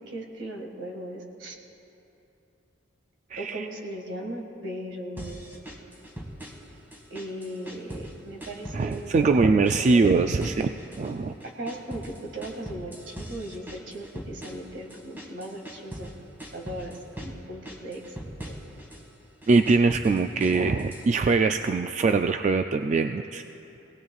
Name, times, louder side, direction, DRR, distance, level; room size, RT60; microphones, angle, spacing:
voice 1, 0.1-1.6 3.4-5.4 7.1-10.4 11.6-16.1 16.5-18.2 18.4-18.6, right 1 dB, 70° right, 0 dB, 2.0 m, -38 dB
voice 2, 3.3-3.7 8.7-11.3 19.5-23.4, right 4 dB, 40° right, 7 dB, 0.3 m, -22 dB
sound 1, 5.2-6.7 6.9-8.1 8.4-9.3 9.7-11.1 11.4-16.1 16.4-17.4 17.7-19.0 19.4-21.1, right 1 dB, 10° right, 1.8 m, -40 dB
24.0 x 18.0 x 2.4 m, 3.0 s
head